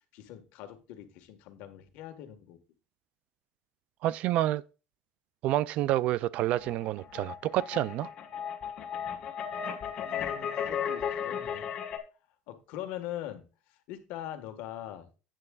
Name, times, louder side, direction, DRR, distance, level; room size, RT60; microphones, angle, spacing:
voice 1, 0.1-2.6 10.0-11.7 12.5-13.4 13.9-15.2, left 12 dB, 65° left, 1.6 m, -42 dB
voice 2, 4.0-4.6 5.4-8.1, right 14 dB, 50° right, 0.3 m, -28 dB
sound 1, 6.4-12.0, left 8 dB, 35° left, 1.5 m, -35 dB
10.5 x 9.0 x 2.4 m
cardioid pair, 165°, 3 cm